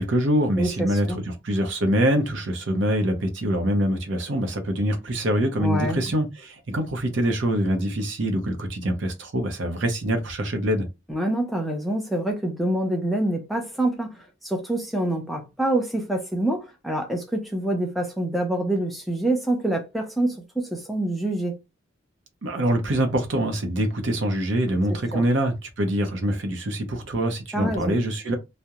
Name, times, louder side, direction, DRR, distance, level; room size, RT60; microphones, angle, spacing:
voice 1, 0.0-10.9 22.4-28.3, right 1 dB, 65° right, 0.6 m, -24 dB
voice 2, 0.6-1.2 5.6-6.0 11.1-14.1 14.4-21.5 25.1-25.2 27.5-28.0, right 1 dB, ahead, 0.5 m, -26 dB
2.3 x 2.0 x 2.8 m
head